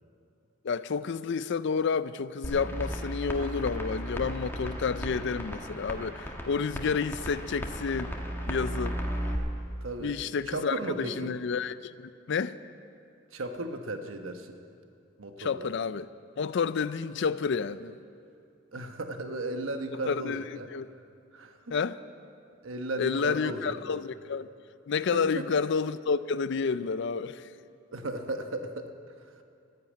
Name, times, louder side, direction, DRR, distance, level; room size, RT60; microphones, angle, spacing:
voice 1, 0.6-8.1 8.5-9.0 10.0-12.6 15.4-16.1 16.4-18.0 20.1-20.4 20.7-20.9 21.7-22.0 23.0-24.5 24.9-27.5, left 5 dB, 60° left, 15 dB, 0.4 m, -30 dB
sound 1, 2.4-9.3, equal, 10° left, 1.4 m, -35 dB
voice 2, 9.8-10.2 10.5-11.3 13.3-14.6 15.2-15.7 18.7-20.7 21.3-21.7 22.6-23.9 25.1-25.4 27.9-28.9, right 2 dB, 75° right, 6 dB, 1.1 m, -35 dB
13.5 x 10.5 x 8.5 m, 2.5 s
head